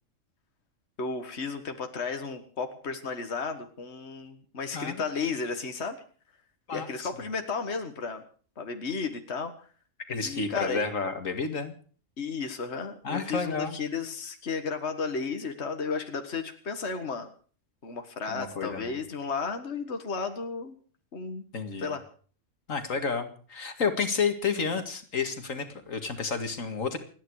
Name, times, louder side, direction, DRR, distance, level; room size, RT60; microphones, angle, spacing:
voice 1, 1.0-6.0 6.7-8.2 8.6-9.5 10.2-10.8 12.2-17.3 17.8-20.8 21.1-21.4 21.8-22.0 24.7-24.8, left 5 dB, 55° left, 6 dB, 2.0 m, -33 dB
voice 2, 6.7-7.1 10.1-11.7 13.0-13.8 18.3-19.0 21.5-22.0 22.7-27.0, left 5 dB, 85° left, 7 dB, 2.5 m, -31 dB
29.0 x 10.5 x 4.8 m, 0.43 s
omnidirectional pair, 1.3 m